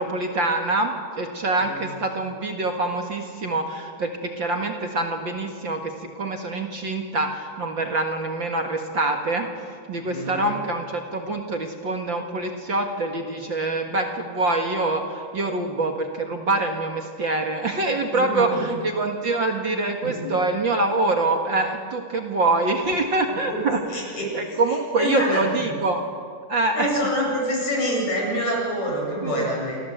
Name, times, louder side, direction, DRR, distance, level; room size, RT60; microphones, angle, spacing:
voice 1, 0.0-26.0 26.5-27.1 29.2-29.5, right 2 dB, 45° right, 3 dB, 2.2 m, -25 dB
voice 2, 10.1-10.6 18.1-18.8 20.0-20.4 23.3-24.6 25.0-25.7 26.7-29.8, equal, 70° left, -1 dB, 8.9 m, -27 dB
28.5 x 22.0 x 8.0 m, 2.2 s
omnidirectional pair, 3.4 m